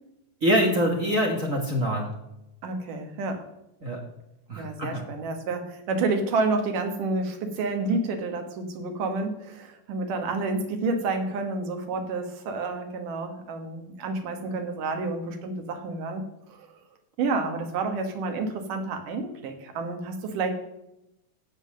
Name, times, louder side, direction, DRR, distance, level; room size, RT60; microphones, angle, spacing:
voice 1, 0.4-2.1 3.8-4.0 4.5-5.0, equal, 40° right, 0 dB, 1.2 m, -24 dB
voice 2, 2.6-3.4 4.6-16.2 17.2-20.5, right 3 dB, 85° right, 5 dB, 3.0 m, -29 dB
15.0 x 5.6 x 6.4 m, 0.87 s
omnidirectional pair, 3.6 m